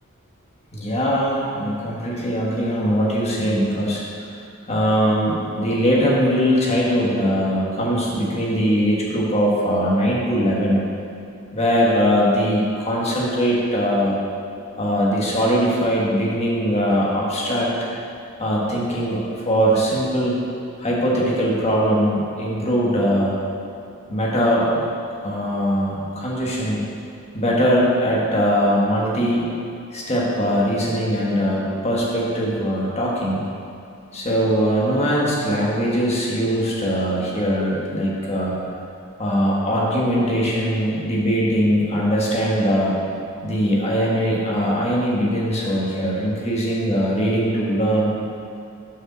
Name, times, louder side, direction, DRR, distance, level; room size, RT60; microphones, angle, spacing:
voice 1, 0.7-4.0 4.7-10.8 11.5-14.2 14.8-17.7 18.4-20.4 20.8-23.4 24.1-24.8 25.2-26.9 27.3-29.5 29.9-33.4 34.1-38.6 39.2-42.9 43.4-48.2, equal, 35° left, -4 dB, 1.4 m, -21 dB
6.1 x 5.2 x 6.1 m, 2.5 s
head